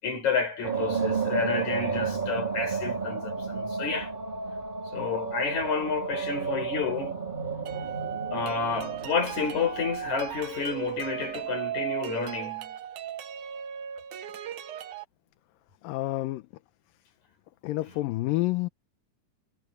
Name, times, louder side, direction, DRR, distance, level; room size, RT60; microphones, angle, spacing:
voice 1, 0.0-4.1 4.9-7.2 8.3-12.8, left 5 dB, 55° left, 6.7 m, -30 dB
sound 1, 0.6-10.8, right 5 dB, 15° right, 3.4 m, -32 dB
sound 2, 7.7-15.0, right 10 dB, 70° right, 2.5 m, -37 dB
voice 2, 15.8-16.4 17.6-18.7, left 18 dB, 80° left, 2.5 m, -28 dB
omnidirectional pair, 3.9 m